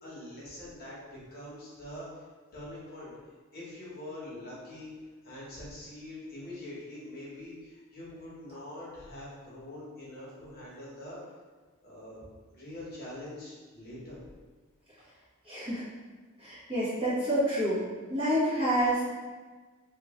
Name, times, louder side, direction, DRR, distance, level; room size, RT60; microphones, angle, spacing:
voice 1, 0.0-2.1 2.5-3.1 3.5-4.9 5.2-11.2 11.8-12.2 12.5-14.2, left 1 dB, 45° left, -7 dB, 1.0 m, -44 dB
voice 2, 15.5-15.8 16.4-17.8 18.1-19.1, equal, 25° right, -11 dB, 1.3 m, -28 dB
3.0 x 2.5 x 3.5 m, 1.4 s
head